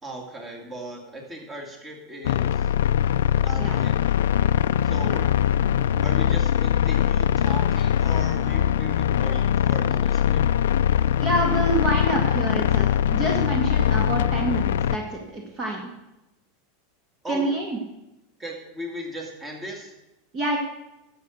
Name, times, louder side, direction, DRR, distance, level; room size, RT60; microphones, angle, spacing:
voice 1, 0.0-2.7 3.4-4.2 4.8-5.1 6.0-10.4 17.2-17.5 18.4-19.9, right 1 dB, 15° right, 1 dB, 2.6 m, -37 dB
sound 1, 2.2-15.0, left 9 dB, 85° left, 0.4 m, -22 dB
voice 2, 11.2-15.9 17.3-17.8 20.3-20.6, right 2 dB, 35° right, 1 dB, 2.1 m, -27 dB
11.5 x 7.4 x 6.5 m, 0.94 s
supercardioid pair, 130°, 0 cm